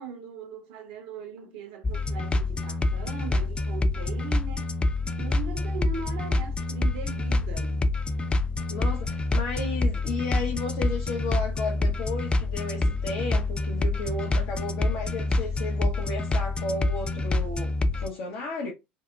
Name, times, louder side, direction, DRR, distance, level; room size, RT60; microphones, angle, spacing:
voice 1, 0.0-4.7 5.0-7.8, right 5 dB, 65° right, 0.8 m, -40 dB
sound 1, 1.8-18.1, left 2 dB, 20° left, 0.3 m, -27 dB
voice 2, 8.7-18.7, left 3 dB, 60° left, 0.6 m, -33 dB
2.7 x 2.1 x 2.2 m
hypercardioid pair, 70°, 6 cm